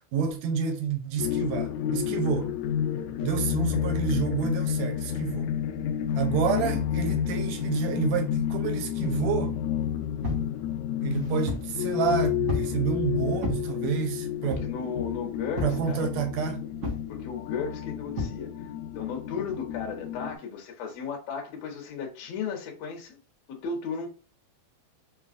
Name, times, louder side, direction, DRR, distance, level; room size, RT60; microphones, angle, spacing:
voice 1, 0.1-2.5 3.2-5.5 6.2-9.6 11.0-14.7 15.6-16.6, right 7 dB, 75° right, 1.6 m, -29 dB
sound 1, 1.2-20.3, left 9 dB, 80° left, 1.7 m, -30 dB
voice 2, 6.2-6.8 14.4-16.1 17.1-18.7 19.0-23.2 23.5-24.1, left 6 dB, 65° left, 1.9 m, -35 dB
sound 2, 10.2-10.5 11.1-11.7 12.5-12.8 13.4-13.7 14.5-14.8 15.6-15.8 16.8-17.1 18.2-18.4, left 1 dB, 55° right, 1.0 m, -32 dB
5.5 x 2.3 x 2.5 m
omnidirectional pair, 3.7 m